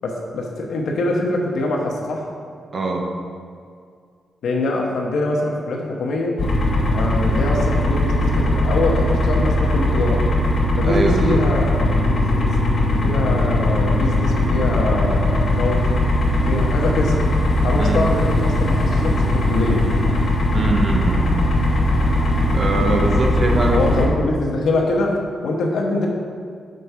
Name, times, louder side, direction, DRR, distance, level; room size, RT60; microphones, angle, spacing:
voice 1, 0.0-2.3 4.4-6.4 6.9-10.2 10.8-12.6 13.0-16.0 16.4-17.2 17.6-19.9 23.7-26.1, left 2 dB, 75° left, 0 dB, 1.0 m, -24 dB
voice 2, 2.7-3.1 10.8-11.4 17.8-18.1 20.5-21.3 22.5-24.1, right 2 dB, 35° right, 2 dB, 0.7 m, -22 dB
sound 1, 6.4-24.1, left 1 dB, 40° left, 1.2 m, -19 dB
6.5 x 4.6 x 5.5 m, 2.2 s
wide cardioid pair, 170°, 0 cm